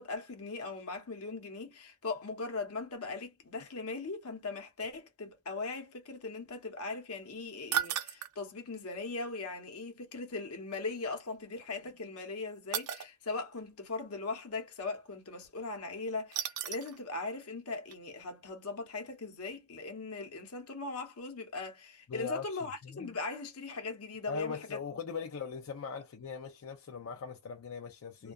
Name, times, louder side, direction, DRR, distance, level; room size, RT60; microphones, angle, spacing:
voice 1, 0.0-24.8 28.2-28.3, left 3 dB, 80° left, 0.9 m, -39 dB
sound 1, 7.7-8.3 10.7-10.8 12.7-13.1 16.3-17.0 17.4-17.5 17.9-18.0, right 9 dB, 85° right, 0.5 m, -34 dB
voice 2, 22.1-23.2 24.3-28.3, left 5 dB, 65° left, 0.4 m, -40 dB
2.3 x 2.2 x 2.5 m
head